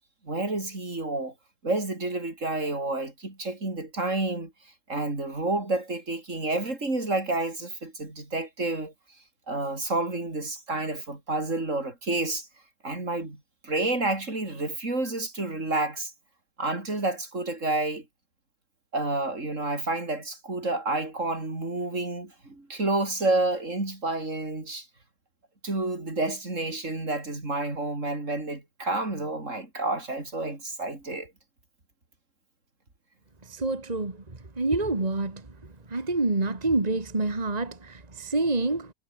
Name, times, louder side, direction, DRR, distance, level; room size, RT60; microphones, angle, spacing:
voice 1, 0.2-1.3 1.6-4.5 4.9-8.9 9.5-12.5 12.8-16.1 16.6-18.0 18.9-24.9 25.6-31.3, right 2 dB, 65° right, 5.1 m, -29 dB
voice 2, 33.5-34.2 34.6-35.4 35.9-38.9, right 2 dB, 30° right, 2.3 m, -27 dB
omnidirectional pair, 1.4 m